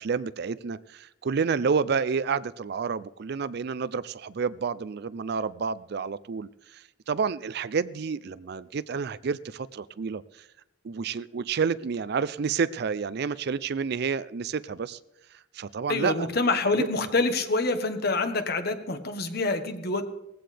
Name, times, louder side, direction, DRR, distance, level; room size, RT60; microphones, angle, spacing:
voice 1, 0.0-10.2 10.8-15.0 15.5-16.3 16.8-16.9, right 5 dB, 60° right, 17 dB, 0.4 m, -29 dB
voice 2, 15.9-20.0, left 3 dB, 55° left, 7 dB, 1.3 m, -26 dB
19.0 x 15.5 x 3.4 m, 0.90 s
head